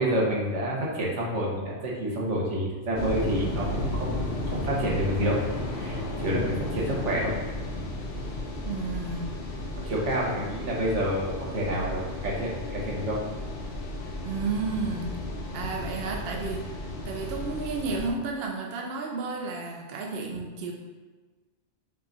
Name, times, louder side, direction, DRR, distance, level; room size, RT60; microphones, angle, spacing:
voice 1, 0.0-4.2 4.4-5.4 5.7-7.3 8.1-8.2 9.5-13.2 20.3-20.4, right 1 dB, 90° right, -3 dB, 1.3 m, -28 dB
sound 1, 2.9-18.1, left 1 dB, 60° left, 0.8 m, -34 dB
voice 2, 8.6-9.3 14.2-15.2 15.5-20.7, right 4 dB, 65° right, 1 dB, 0.8 m, -32 dB
5.4 x 2.4 x 3.9 m, 1.3 s
omnidirectional pair, 1.2 m